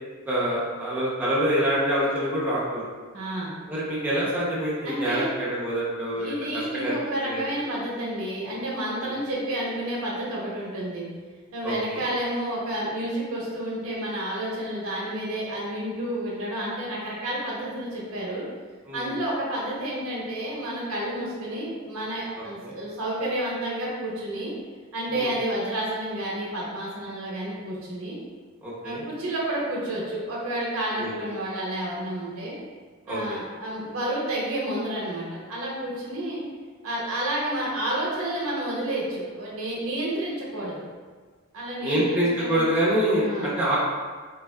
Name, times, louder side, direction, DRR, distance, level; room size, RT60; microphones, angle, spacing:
voice 1, 0.3-2.8 3.7-6.3 6.7-7.0 7.3-7.5 9.0-9.2 11.6-12.0 18.9-19.1 22.6-22.7 25.1-25.3 28.6-29.0 31.0-31.1 33.1-33.4 41.8-43.8, equal, 10° right, -9 dB, 0.6 m, -26 dB
voice 2, 3.1-3.5 4.8-5.3 6.2-11.1 11.5-18.5 18.9-24.5 24.9-28.2 28.8-32.5 33.1-36.4 36.8-40.8 41.5-42.6 43.2-43.5, right 1 dB, 85° right, -5 dB, 0.8 m, -30 dB
3.2 x 2.3 x 2.2 m, 1.5 s
head